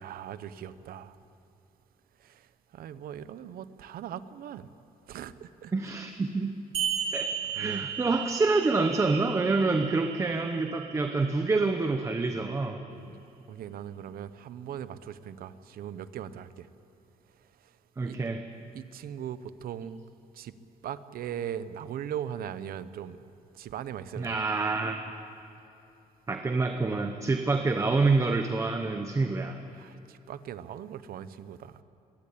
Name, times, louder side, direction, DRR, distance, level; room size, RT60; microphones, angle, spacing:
voice 1, 0.0-1.1 2.7-4.7 5.1-5.7 7.0-7.1 7.6-7.8 12.9-13.2 13.5-16.7 18.1-18.2 18.7-20.0 20.4-20.5 20.8-23.2 23.6-24.4 29.8-31.7, right 9 dB, 90° right, 0.9 m, -39 dB
voice 2, 5.7-6.6 7.1-12.8 18.0-18.5 24.2-25.0 26.3-29.6, right 3 dB, 20° right, 0.9 m, -27 dB
sound 1, 6.7-11.8, right 8 dB, 40° right, 3.2 m, -35 dB
22.0 x 17.5 x 8.5 m
cardioid pair, 165°, 15 cm